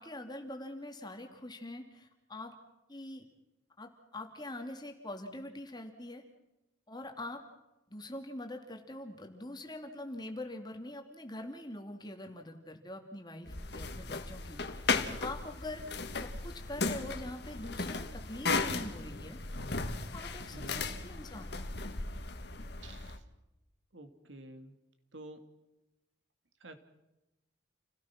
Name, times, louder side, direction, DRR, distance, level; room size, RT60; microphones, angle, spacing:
voice 1, 0.0-2.5 2.9-3.2 3.8-6.2 6.9-7.4 7.9-15.9 16.1-19.4 20.1-21.5, left 1 dB, 25° left, 4 dB, 2.7 m, -44 dB
sound 1, 13.5-23.2, left 3 dB, 60° left, 1.7 m, -36 dB
voice 2, 20.5-20.9 22.8-23.3 23.9-24.8 25.1-25.4 26.6-26.7, right 2 dB, 90° right, 8 dB, 2.4 m, -49 dB
29.5 x 17.0 x 6.0 m, 0.95 s
head